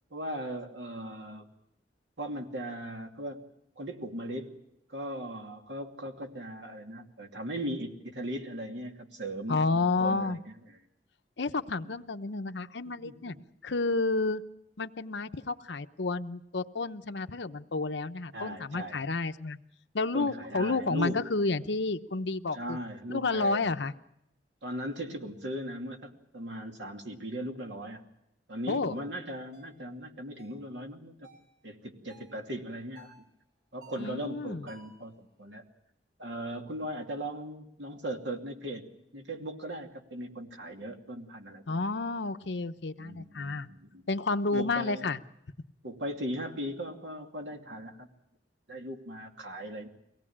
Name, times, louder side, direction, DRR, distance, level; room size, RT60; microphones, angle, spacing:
voice 1, 0.1-1.5 2.2-3.4 3.8-4.6 4.9-10.8 11.8-12.0 12.9-13.4 18.3-19.0 20.1-21.2 22.5-23.7 24.6-28.0 28.5-31.3 31.6-33.1 33.7-35.6 36.2-41.8 43.0-44.1 44.5-45.1 45.8-48.1 48.7-49.9, equal, 85° right, 3 dB, 2.6 m, -38 dB
voice 2, 9.5-10.4 11.4-13.4 13.6-14.4 14.8-19.6 19.9-22.8 23.1-23.9 28.7-29.0 34.0-34.7 41.7-43.7 44.1-45.2, left 3 dB, 80° left, 10 dB, 0.9 m, -30 dB
sound 1, 28.7-28.9 29.5-29.8 30.4-30.7 31.2-31.5 32.1-32.4 32.9-33.2 33.8-34.1 34.7-35.0, right 1 dB, 60° right, 7.8 m, -55 dB
23.5 x 18.5 x 8.7 m, 0.82 s
head